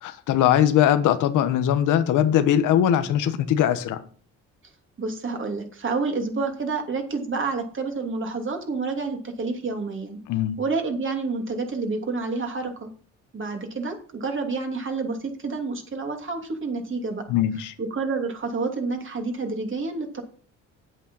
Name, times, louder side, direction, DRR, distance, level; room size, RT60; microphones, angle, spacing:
voice 1, 0.0-4.0 10.3-10.6 17.3-17.7, left 10 dB, 90° left, 1.2 m, -21 dB
voice 2, 5.0-10.2 10.6-12.9 13.3-17.3 17.8-20.2, right 4 dB, 40° right, 2.9 m, -29 dB
9.2 x 8.2 x 5.6 m
cardioid pair, 90°, 30 cm